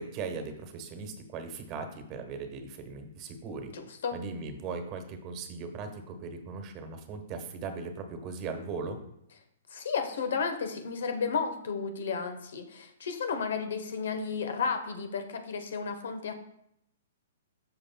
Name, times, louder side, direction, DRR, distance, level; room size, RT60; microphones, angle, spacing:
voice 1, 0.0-3.7 4.1-9.0, right 4 dB, 35° right, 6 dB, 1.2 m, -38 dB
voice 2, 3.7-4.2 9.7-16.3, left 5 dB, 70° left, 8 dB, 1.0 m, -33 dB
13.0 x 4.8 x 2.3 m, 0.78 s
hypercardioid pair, 125°, 0 cm